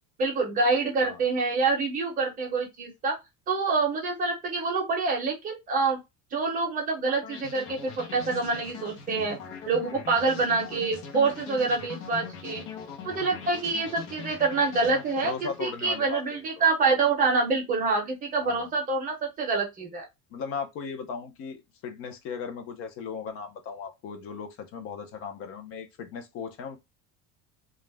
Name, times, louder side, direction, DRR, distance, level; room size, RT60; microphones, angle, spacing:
voice 1, 0.2-3.1 3.5-6.0 6.3-9.4 9.7-12.6 13.0-20.0, right 4 dB, 25° right, 0.7 m, -26 dB
sound 1, 7.2-16.3, left 6 dB, 75° left, 0.8 m, -42 dB
voice 2, 15.2-16.7 18.4-18.7 20.3-26.8, left 6 dB, 45° left, 0.5 m, -37 dB
2.4 x 2.0 x 3.2 m
cardioid pair, 175°, 33 cm